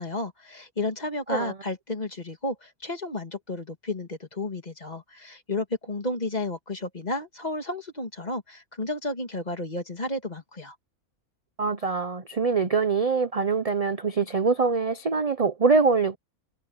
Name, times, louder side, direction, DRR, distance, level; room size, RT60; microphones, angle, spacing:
voice 1, 0.0-10.8, left 2 dB, 30° left, 2.3 m, -32 dB
voice 2, 11.6-16.2, right 4 dB, 35° right, 0.6 m, -24 dB
omnidirectional pair, 1.6 m